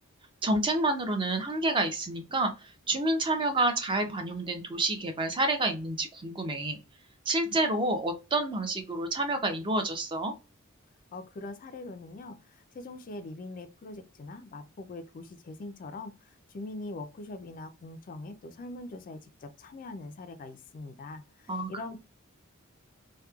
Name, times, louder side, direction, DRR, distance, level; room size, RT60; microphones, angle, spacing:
voice 1, 0.4-6.8 7.3-10.3 21.5-21.7, right 2 dB, 25° right, 0.5 m, -29 dB
voice 2, 11.1-22.0, left 2 dB, 40° left, 0.3 m, -42 dB
2.9 x 2.1 x 2.2 m
head